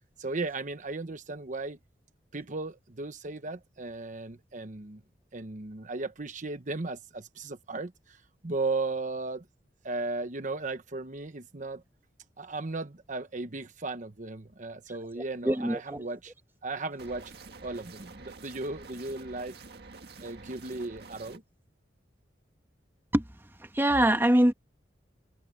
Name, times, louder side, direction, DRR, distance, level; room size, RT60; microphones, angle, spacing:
voice 1, 0.2-1.8 2.3-5.0 5.3-9.5 9.8-11.8 12.4-16.3 16.6-17.3 17.6-19.5 20.2-21.4, right 3 dB, 45° right, 1.1 m, -36 dB
voice 2, 15.4-16.0 23.1-23.2 23.6-24.5, right 1 dB, 15° right, 1.4 m, -23 dB
sound 1, 17.0-21.4, right 3 dB, 65° right, 1.9 m, -48 dB
head